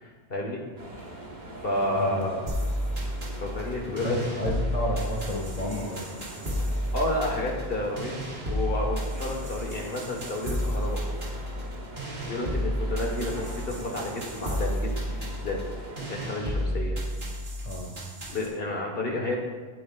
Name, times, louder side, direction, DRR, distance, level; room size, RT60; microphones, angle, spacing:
voice 1, 0.0-0.6 1.6-2.4 3.4-4.2 6.7-8.2 8.5-11.0 12.3-15.6 16.0-17.0 18.3-19.4, left 1 dB, 65° left, 0 dB, 1.6 m, -31 dB
sound 1, 0.8-16.3, right 1 dB, 45° right, 1.4 m, -43 dB
voice 2, 1.9-2.3 3.8-6.0 17.6-18.0, left 1 dB, 40° left, 0 dB, 1.6 m, -31 dB
sound 2, 2.5-18.5, equal, 75° right, 2.6 m, -32 dB
17.5 x 9.5 x 2.4 m, 1.4 s
omnidirectional pair, 1.0 m